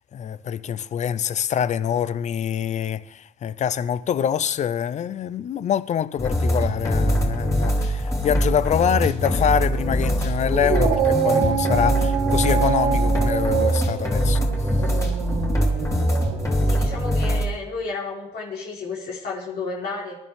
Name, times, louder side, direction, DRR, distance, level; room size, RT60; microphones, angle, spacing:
voice 1, 0.1-14.5, left 9 dB, 45° left, 0.6 m, -25 dB
sound 1, 6.2-17.5, equal, 15° left, 3.2 m, -23 dB
Dog, 10.4-17.0, right 8 dB, 70° right, 2.0 m, -26 dB
voice 2, 16.6-20.2, left 4 dB, 70° left, 4.0 m, -32 dB
22.5 x 11.5 x 3.6 m
cardioid pair, 110°, 17 cm